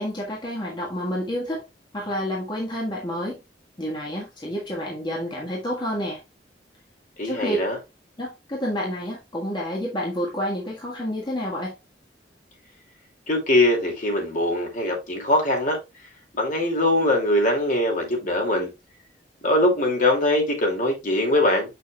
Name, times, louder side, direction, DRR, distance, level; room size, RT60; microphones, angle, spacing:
voice 1, 0.0-1.6 1.9-3.4 3.8-6.2 7.2-7.6 8.2-11.8, equal, 25° left, 1.6 m, -29 dB
voice 2, 7.2-7.8 13.3-15.8 16.3-18.7 19.4-21.7, left 1 dB, 45° left, 2.5 m, -22 dB
7.1 x 6.7 x 2.3 m
head